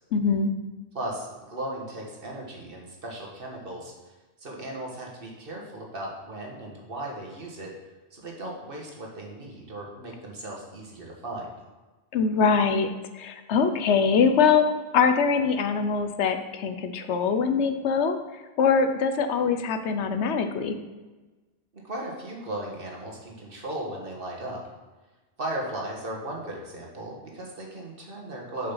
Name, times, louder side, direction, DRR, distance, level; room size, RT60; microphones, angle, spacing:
voice 1, 0.1-0.5 12.1-12.9 13.1-14.7 14.9-18.2 18.6-20.7, left 5 dB, 80° left, 8 dB, 1.0 m, -23 dB
voice 2, 0.9-3.9 4.4-7.7 8.1-11.5 21.7-24.7 25.4-28.7, right 1 dB, 55° right, -1 dB, 1.6 m, -36 dB
6.9 x 5.3 x 5.6 m, 1.2 s
omnidirectional pair, 1.2 m